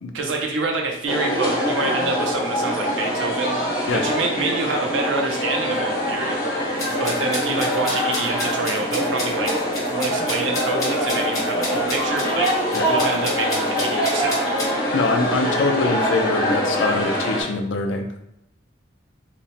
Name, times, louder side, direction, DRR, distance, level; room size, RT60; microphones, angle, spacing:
voice 1, 0.1-3.5 3.9-6.4 7.0-9.5 9.9-14.4, right 3 dB, 90° right, 2 dB, 0.6 m, -26 dB
sound 1, 1.1-17.4, equal, 50° left, 0.9 m, -24 dB
sound 2, 6.8-14.7, left 1 dB, 20° left, 1.0 m, -31 dB
voice 2, 14.9-18.2, left 3 dB, 80° left, 5 dB, 0.4 m, -24 dB
2.9 x 2.1 x 2.7 m, 0.82 s
head